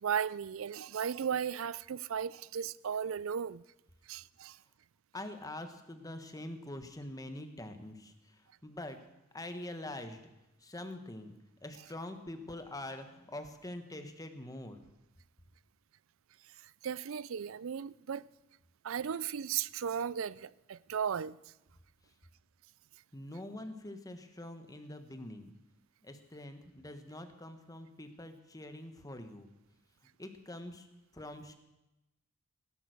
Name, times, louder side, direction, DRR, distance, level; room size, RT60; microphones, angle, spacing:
voice 1, 0.0-3.6 4.1-4.6 16.6-18.3 18.8-21.4, right 7 dB, 70° right, 0.4 m, -36 dB
voice 2, 5.1-8.1 8.6-9.0 9.3-10.2 10.6-11.3 11.6-14.8 23.1-25.5 26.0-29.5 30.2-30.9 31.1-31.6, left 1 dB, 15° left, 1.4 m, -44 dB
18.0 x 11.5 x 6.5 m
head